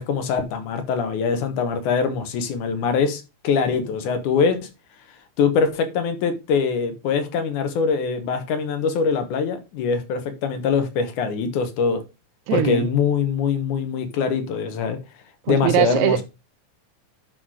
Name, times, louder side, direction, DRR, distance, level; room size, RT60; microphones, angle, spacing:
voice 1, 0.0-4.6 5.4-12.0 12.5-15.0 15.5-16.2, left 5 dB, 80° left, 2.7 m, -23 dB
voice 2, 12.5-12.9 15.5-16.2, right 12 dB, 80° right, 1.9 m, -21 dB
10.5 x 3.9 x 4.7 m
omnidirectional pair, 3.5 m